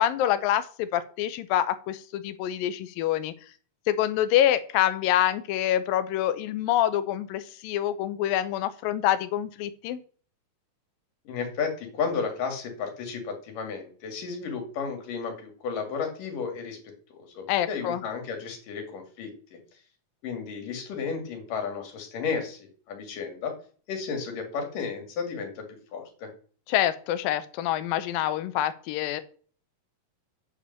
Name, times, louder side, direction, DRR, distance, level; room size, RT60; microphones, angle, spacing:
voice 1, 0.0-3.3 3.9-10.0 17.5-18.0 26.7-29.2, left 12 dB, 85° left, 13 dB, 2.4 m, -26 dB
voice 2, 11.3-19.6 20.2-23.5 23.9-25.7 25.9-26.3, left 5 dB, 70° left, 5 dB, 3.7 m, -33 dB
8.5 x 5.1 x 6.7 m, 0.42 s
omnidirectional pair, 4.1 m